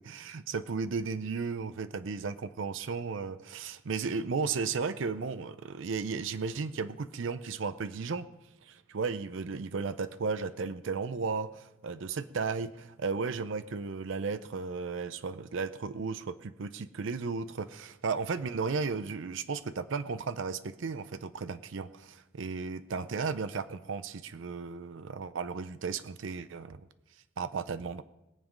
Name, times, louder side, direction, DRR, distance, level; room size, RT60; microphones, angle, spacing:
voice 1, 0.1-8.3 8.6-26.9 27.4-28.0, right 5 dB, 60° right, 12 dB, 0.5 m, -34 dB
21.5 x 7.3 x 5.2 m, 0.97 s
head